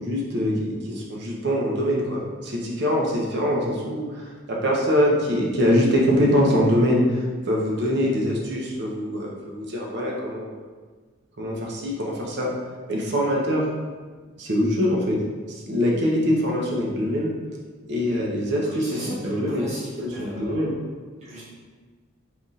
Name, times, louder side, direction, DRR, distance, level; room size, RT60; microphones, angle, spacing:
voice 1, 0.0-10.6 11.4-12.5 12.9-13.7 14.4-15.2 15.5-17.3 17.9-19.6 20.0-20.7, equal, 60° right, -2 dB, 0.8 m, -23 dB
voice 2, 18.6-20.7 21.2-21.4, equal, 35° right, -9 dB, 1.3 m, -37 dB
3.5 x 2.4 x 4.0 m, 1.4 s
head